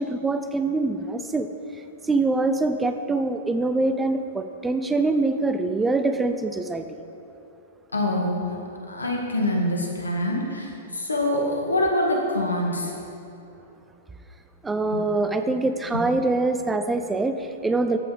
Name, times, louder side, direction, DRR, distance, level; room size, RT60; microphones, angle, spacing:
voice 1, 0.0-1.5 2.0-7.0 14.6-18.0, right 3 dB, 10° right, 8 dB, 0.6 m, -24 dB
voice 2, 7.9-8.6 8.9-12.9 14.9-15.0 15.9-16.0, left 1 dB, 90° left, 0 dB, 1.9 m, -25 dB
13.5 x 6.0 x 5.2 m, 2.8 s
hypercardioid pair, 110°, 0 cm